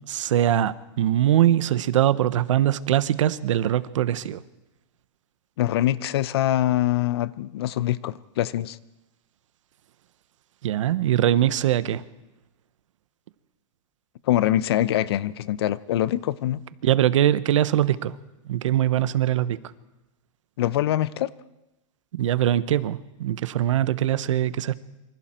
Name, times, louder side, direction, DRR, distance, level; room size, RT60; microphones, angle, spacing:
voice 1, 0.1-4.4 10.6-12.0 16.8-18.1 18.5-19.6 22.1-24.8, right 12 dB, 70° right, 1.0 m, -22 dB
voice 2, 5.6-8.8 14.3-16.6 20.6-21.3, left 13 dB, 50° left, 0.7 m, -24 dB
27.0 x 25.0 x 4.4 m
supercardioid pair, 175°, 16 cm